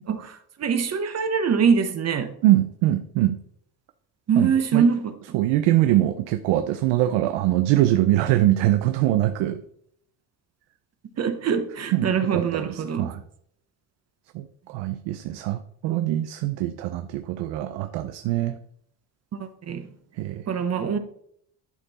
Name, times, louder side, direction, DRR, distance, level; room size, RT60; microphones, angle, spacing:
voice 1, 0.1-2.3 4.3-5.1 11.2-13.1 19.3-19.9 20.5-21.0, right 6 dB, 35° right, 0.9 m, -23 dB
voice 2, 2.4-3.4 4.4-4.8 5.3-9.6 11.9-13.2 14.3-18.6 20.2-20.4, right 14 dB, 90° right, 0.6 m, -23 dB
11.0 x 4.4 x 4.1 m
cardioid pair, 120°, 43 cm